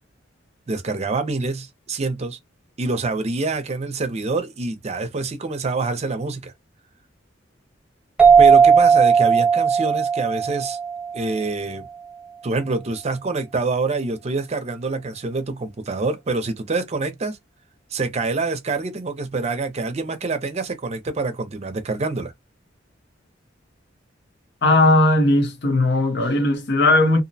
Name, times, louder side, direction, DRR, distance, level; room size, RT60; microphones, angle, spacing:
voice 1, 0.7-2.4 2.8-6.5 8.4-10.8 11.1-11.9 12.4-17.4 17.9-22.3, right 3 dB, 35° right, 0.5 m, -26 dB
sound 1, 8.2-11.5, right 6 dB, 5° right, 0.8 m, -16 dB
voice 2, 24.6-27.2, left 2 dB, 60° left, 0.7 m, -17 dB
2.5 x 2.0 x 2.6 m
head